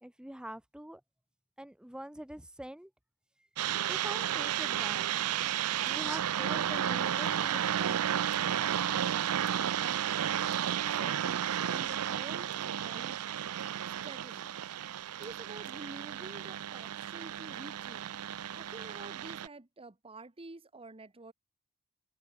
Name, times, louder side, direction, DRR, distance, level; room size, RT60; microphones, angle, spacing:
voice 1, 0.0-1.0 1.6-2.9 3.4-3.5 3.9-5.1 5.9-8.1, right 1 dB, 5° right, 0.6 m, -44 dB
sound 1, 3.6-19.5, right 10 dB, 80° right, 0.5 m, -33 dB
voice 2, 10.8-13.2 14.0-14.6 15.2-18.1 18.5-21.3, right 2 dB, 25° right, 1.2 m, -49 dB
head